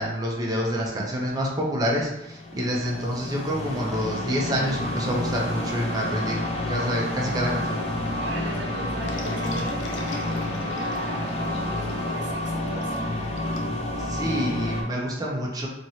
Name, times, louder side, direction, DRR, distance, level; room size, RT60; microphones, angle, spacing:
voice 1, 0.0-6.4 6.7-7.8 14.0-15.7, equal, 20° right, -3 dB, 0.5 m, -27 dB
sound 1, 2.2-14.8, left 1 dB, 35° left, 0.4 m, -30 dB
Keyboard (musical), 3.5-12.5, left 2 dB, 10° left, 0.7 m, -38 dB
voice 2, 8.2-12.9, right 2 dB, 90° right, 0 dB, 0.7 m, -38 dB
sound 2, 9.0-14.4, left 3 dB, 85° left, 0.5 m, -41 dB
2.9 x 2.8 x 2.7 m, 0.91 s
head